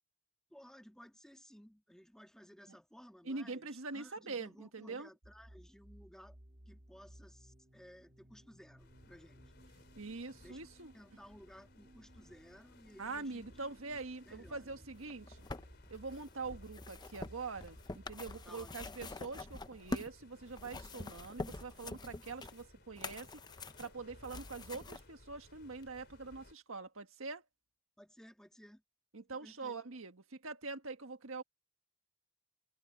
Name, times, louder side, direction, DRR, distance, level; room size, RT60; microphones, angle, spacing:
voice 1, 0.5-6.4 6.7-9.4 10.4-10.6 10.9-13.5 14.2-14.7 18.4-18.9 28.0-28.8 29.3-29.8, equal, 5° left, 2.5 m, -57 dB
voice 2, 3.2-5.1 10.0-10.9 13.0-15.5 15.9-27.4 29.1-31.4, right 4 dB, 80° right, 1.6 m, -44 dB
sound 1, 5.2-20.8, right 1 dB, 35° right, 1.8 m, -61 dB
sound 2, 8.8-26.5, left 1 dB, 55° left, 3.8 m, -59 dB
sound 3, 15.0-20.2 20.5-25.0 25.8-25.9, left 2 dB, 20° left, 0.6 m, -45 dB
head